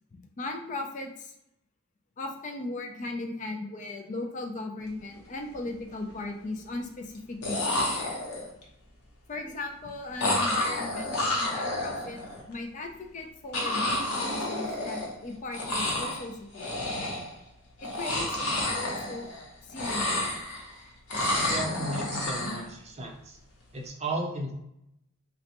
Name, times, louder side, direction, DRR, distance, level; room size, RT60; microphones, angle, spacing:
voice 1, 0.1-1.3 2.2-7.9 9.3-12.2 12.5-17.0 17.8-19.3 19.7-20.3, left 2 dB, 35° left, 3 dB, 0.4 m, -37 dB
sound 1, 5.0-5.2 5.5-6.1 7.1-7.2 7.4-8.6 10.2-12.4 13.5-15.3 15.5-16.3 16.5-17.4 17.8-19.4 19.7-20.7 21.1-22.6, left 1 dB, 85° left, 0.9 m, -30 dB
voice 2, 21.5-23.3 23.7-24.5, right 1 dB, 30° right, 0 dB, 0.6 m, -34 dB
3.9 x 2.2 x 2.8 m, 0.81 s
head